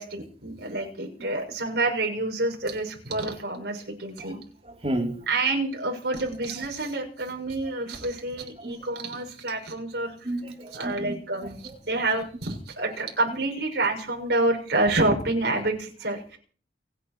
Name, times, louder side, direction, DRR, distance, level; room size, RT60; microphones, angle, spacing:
voice 1, 0.0-4.4 5.3-10.3 10.7-16.4, right 2 dB, 65° right, 2 dB, 6.7 m, -28 dB
voice 2, 4.6-5.2 8.6-8.7 10.2-11.2, right 1 dB, 35° right, 3 dB, 3.1 m, -31 dB
30.0 x 10.0 x 4.6 m, 0.42 s
head